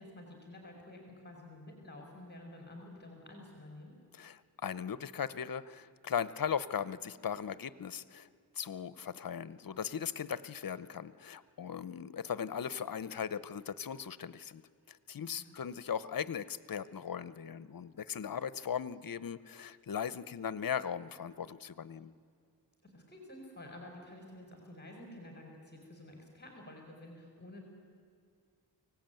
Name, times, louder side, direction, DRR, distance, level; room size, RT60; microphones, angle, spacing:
voice 1, 0.0-3.9 15.4-15.5 22.8-27.6, left 1 dB, 25° left, 1 dB, 4.7 m, -50 dB
voice 2, 4.1-8.3 8.5-14.6 14.9-22.1, left 8 dB, 55° left, 16 dB, 0.9 m, -38 dB
24.0 x 18.0 x 9.1 m, 2.3 s
cardioid pair, 75°, 41 cm